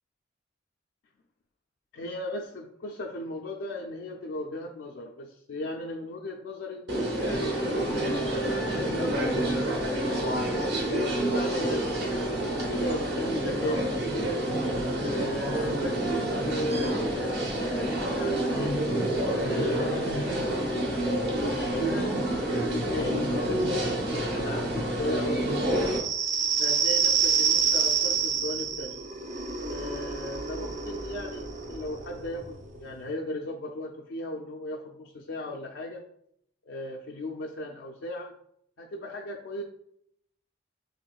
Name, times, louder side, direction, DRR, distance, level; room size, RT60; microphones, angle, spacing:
voice 1, 1.9-9.9 10.8-14.4 14.9-20.6 21.1-25.9 26.6-29.0 29.6-36.0 36.7-38.3 38.8-39.6, left 1 dB, 80° left, 0 dB, 0.4 m, -37 dB
sound 1, 6.9-26.0, right 1 dB, 55° right, 0.9 m, -28 dB
sound 2, 13.2-21.1, right 2 dB, 90° right, 0.7 m, -48 dB
sound 3, 25.7-33.0, right 6 dB, 40° right, 0.4 m, -28 dB
5.6 x 3.0 x 2.3 m, 0.72 s
head